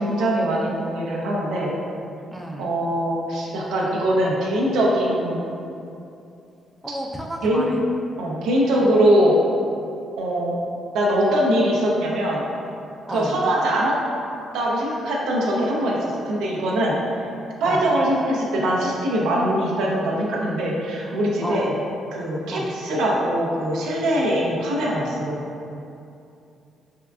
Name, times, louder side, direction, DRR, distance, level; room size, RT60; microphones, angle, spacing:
voice 1, 0.0-1.7 2.6-5.5 7.4-7.6 8.2-9.4 10.2-10.6 10.9-12.5 13.1-14.0 14.5-17.0 17.6-21.7 22.1-25.5, right 1 dB, 85° right, -3 dB, 0.5 m, -22 dB
voice 2, 2.3-2.7 6.8-7.8 13.1-13.4 17.6-17.8 21.4-21.7 22.5-22.7, right 1 dB, 5° right, -2 dB, 0.3 m, -30 dB
3.4 x 2.3 x 2.3 m, 2.6 s
cardioid pair, 90°, 0 cm